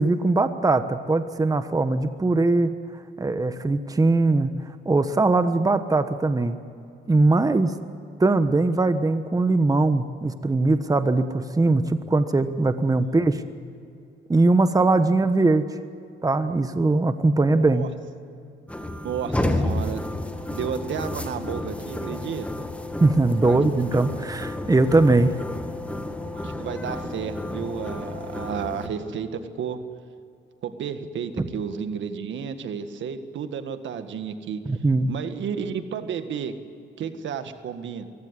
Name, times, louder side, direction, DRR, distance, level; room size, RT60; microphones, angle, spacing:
voice 1, 0.0-2.7 3.2-4.6 4.8-6.6 7.1-7.7 8.2-13.4 14.3-15.8 16.2-17.9 23.0-25.3 31.4-31.5 34.7-35.1, right 2 dB, 20° right, 10 dB, 1.2 m, -21 dB
voice 2, 17.6-17.9 19.0-20.0 20.5-22.5 23.4-23.6 26.3-29.8 30.6-34.6 35.1-36.5 37.0-38.1, right 7 dB, 70° right, 9 dB, 1.8 m, -32 dB
sound 1, 18.7-28.9, left 1 dB, 5° left, 2.1 m, -31 dB
24.0 x 16.5 x 9.8 m, 2.5 s
cardioid pair, 90°, 20 cm